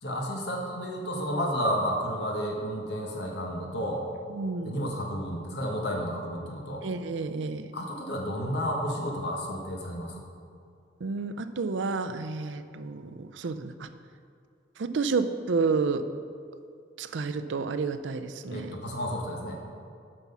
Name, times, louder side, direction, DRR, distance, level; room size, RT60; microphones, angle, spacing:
voice 1, 0.0-4.1 4.6-6.8 7.7-10.2 18.5-19.7, equal, 65° left, 0 dB, 1.3 m, -31 dB
voice 2, 4.3-4.8 6.8-7.7 11.0-13.9 14.8-16.1 17.0-18.8, right 4 dB, 80° right, 10 dB, 0.5 m, -30 dB
7.7 x 6.0 x 5.6 m, 2.4 s
head